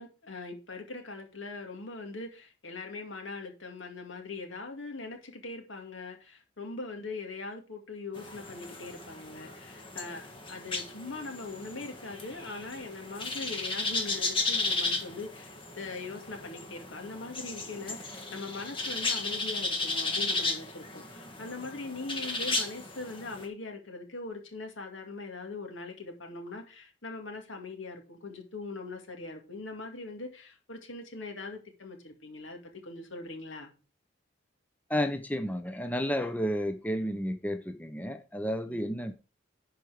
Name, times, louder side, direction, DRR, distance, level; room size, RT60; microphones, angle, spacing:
voice 1, 0.0-33.7 38.6-39.0, left 3 dB, 85° left, 2.3 m, -41 dB
sound 1, 8.2-23.5, left 3 dB, 25° left, 1.4 m, -35 dB
voice 2, 34.9-39.1, equal, 10° left, 0.6 m, -31 dB
11.0 x 4.7 x 5.0 m
head